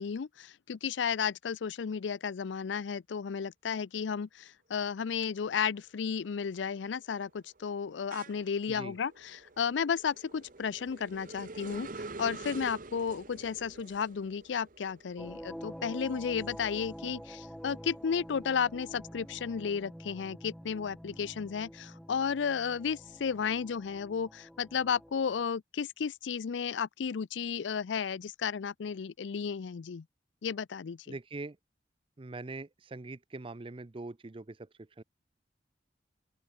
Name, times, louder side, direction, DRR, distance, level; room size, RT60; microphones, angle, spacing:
voice 1, 0.0-30.0 30.4-31.0, left 6 dB, 90° left, 0.5 m, -33 dB
sound 1, 5.2-5.6 6.0-17.2 17.6-19.4, right 3 dB, 50° right, 1.2 m, -48 dB
sound 2, 15.2-25.4, equal, ahead, 2.0 m, -47 dB
voice 2, 31.1-31.6 32.2-35.0, right 2 dB, 30° right, 0.6 m, -43 dB
open air
head